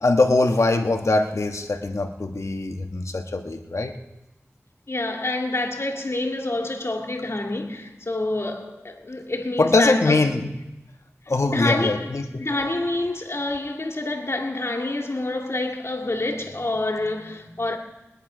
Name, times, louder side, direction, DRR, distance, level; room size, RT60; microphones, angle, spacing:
voice 1, 0.0-3.9 9.6-10.5 11.3-12.4, left 2 dB, 75° left, 1.4 m, -22 dB
voice 2, 4.9-10.2 11.4-17.8, left 2 dB, 60° left, 2.2 m, -27 dB
21.0 x 10.0 x 5.0 m
wide cardioid pair, 40°, 5 cm